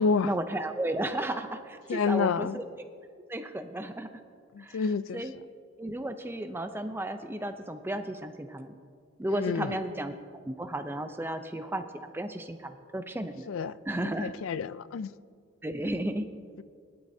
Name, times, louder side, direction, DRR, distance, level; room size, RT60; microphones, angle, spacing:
voice 1, 0.2-2.8 3.3-4.1 4.6-5.3 5.8-8.7 9.2-13.5 13.9-14.3 15.6-16.3, right 1 dB, 10° right, 0.4 m, -34 dB
voice 2, 1.9-2.6 4.6-5.2 9.3-9.8 13.5-13.7 14.0-15.1, left 5 dB, 65° left, 0.3 m, -29 dB
20.0 x 11.5 x 2.7 m
head